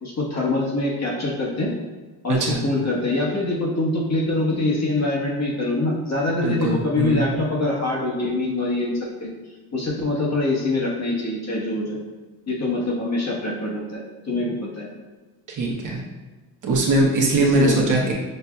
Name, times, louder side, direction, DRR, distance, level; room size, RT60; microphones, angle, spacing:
voice 1, 0.0-1.7 2.2-9.3 9.7-12.0 12.5-14.9 17.4-17.9, left 2 dB, 40° left, -4 dB, 1.3 m, -24 dB
voice 2, 2.3-2.6 6.4-7.3 15.5-16.0 16.6-18.1, right 2 dB, 45° right, -2 dB, 1.0 m, -21 dB
6.5 x 2.7 x 2.3 m, 1.2 s
cardioid pair, 90°, 41 cm